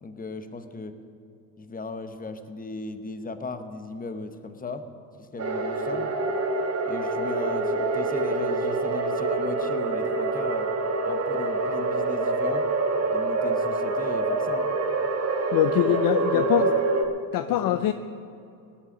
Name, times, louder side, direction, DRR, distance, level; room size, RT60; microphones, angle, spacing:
voice 1, 0.0-1.0 1.6-4.9 5.2-6.1 6.9-10.7 11.0-12.7 13.1-14.7 15.8-16.7 17.5-17.8, left 3 dB, 15° left, 9 dB, 1.0 m, -37 dB
sound 1, 5.4-17.0, right 3 dB, 30° right, 1.5 m, -26 dB
voice 2, 15.5-16.8 17.3-17.9, left 12 dB, 45° left, 10 dB, 0.6 m, -23 dB
17.5 x 8.8 x 6.3 m, 2.6 s
supercardioid pair, 90°, 50 cm